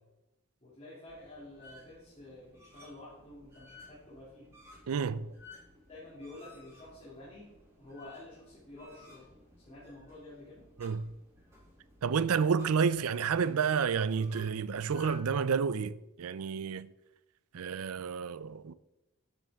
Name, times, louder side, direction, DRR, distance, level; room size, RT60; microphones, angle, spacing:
voice 1, 0.6-4.5 5.9-9.3 9.6-10.7, left 2 dB, 30° left, 2.7 m, -50 dB
sound 1, 1.1-15.3, left 2 dB, 15° right, 2.7 m, -57 dB
voice 2, 4.9-5.3 10.8-11.0 12.0-16.9 17.5-18.7, right 6 dB, 85° right, 0.5 m, -30 dB
11.5 x 7.7 x 3.6 m
head